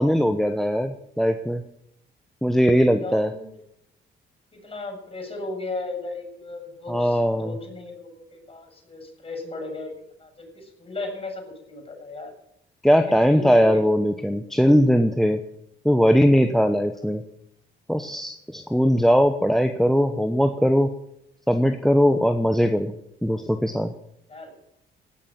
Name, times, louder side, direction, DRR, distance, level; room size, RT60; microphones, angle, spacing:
voice 1, 0.0-1.6 2.4-3.3 6.9-7.6 12.8-15.4 15.8-17.2 17.9-20.9 21.5-22.9 23.2-23.9, equal, ahead, 8 dB, 0.9 m, -20 dB
voice 2, 3.0-3.5 4.6-9.9 10.2-12.3 13.0-13.9 24.3-24.6, left 3 dB, 30° left, 2 dB, 7.4 m, -36 dB
17.0 x 6.8 x 9.1 m, 0.77 s
cardioid pair, 90°, 20 cm